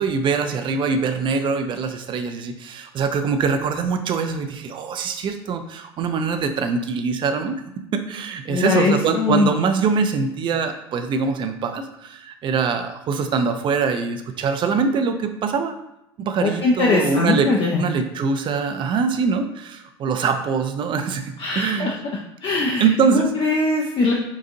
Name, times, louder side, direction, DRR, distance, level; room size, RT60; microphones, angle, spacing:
voice 1, 0.0-15.7 16.2-17.5 17.8-21.9 22.8-23.3, right 5 dB, 35° right, 7 dB, 0.4 m, -23 dB
voice 2, 8.5-9.5 16.4-17.8 21.4-21.9 22.4-24.1, left 3 dB, 35° left, -2 dB, 0.5 m, -21 dB
3.8 x 2.5 x 2.6 m, 0.83 s
hypercardioid pair, 70°, 14 cm